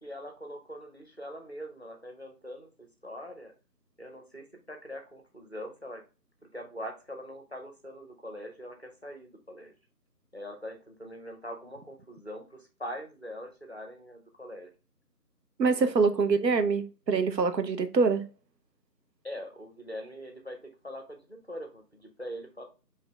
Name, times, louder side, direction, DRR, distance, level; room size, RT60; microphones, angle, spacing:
voice 1, 0.0-3.5 4.0-6.0 6.5-9.7 10.3-14.7 15.7-16.2 19.2-22.6, equal, 40° left, 0.6 m, -43 dB
voice 2, 15.6-18.2, right 4 dB, 90° right, 0.7 m, -25 dB
4.0 x 2.8 x 3.3 m
figure-of-eight pair, 175°, 49 cm